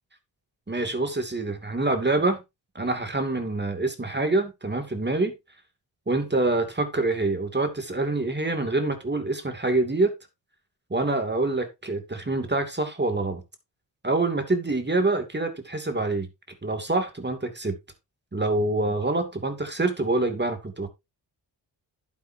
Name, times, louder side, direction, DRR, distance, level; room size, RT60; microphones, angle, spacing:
voice 1, 0.7-2.4 2.7-5.3 6.1-10.1 10.9-13.4 14.0-16.3 16.6-17.7 18.3-20.9, right 2 dB, 25° right, 2.6 m, -26 dB
11.5 x 8.4 x 2.8 m
cardioid pair, 60°, 43 cm